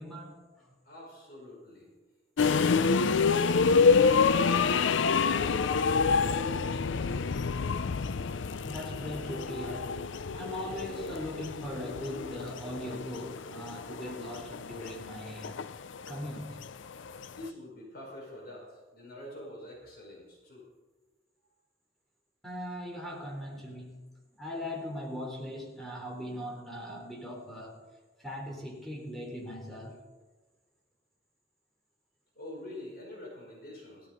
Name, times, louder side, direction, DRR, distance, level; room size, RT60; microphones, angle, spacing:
voice 1, 0.0-0.7 8.6-10.0 10.3-15.6 16.1-16.6 22.4-24.1 24.4-27.8 28.2-30.0, equal, ahead, -2 dB, 3.6 m, -40 dB
voice 2, 0.8-1.9 2.4-7.3 17.3-20.7 32.3-34.1, left 1 dB, 50° left, -2 dB, 5.1 m, -45 dB
sound 1, 2.4-17.5, left 5 dB, 80° left, 0.5 m, -28 dB
17.0 x 13.0 x 5.2 m, 1.2 s
head